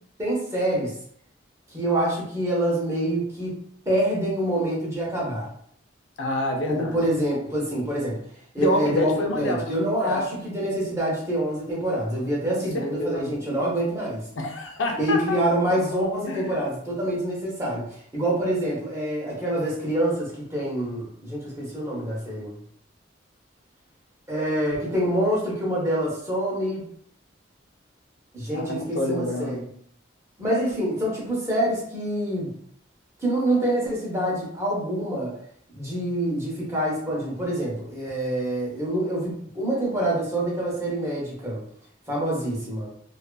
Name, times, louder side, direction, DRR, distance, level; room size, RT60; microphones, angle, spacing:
voice 1, 0.2-0.9 1.7-3.6 3.9-5.5 6.7-8.2 8.5-14.2 15.0-17.8 18.1-22.5 24.3-26.8 28.3-29.6 30.4-32.5 33.2-35.3 35.7-41.6 42.1-42.9, right 1 dB, 15° right, -5 dB, 0.8 m, -26 dB
voice 2, 6.2-7.0 8.6-9.7 10.0-10.2 12.5-13.3 14.3-15.4 16.3-16.6 28.5-29.7, left 1 dB, 90° left, 2 dB, 0.5 m, -27 dB
2.7 x 2.4 x 2.2 m, 0.64 s
head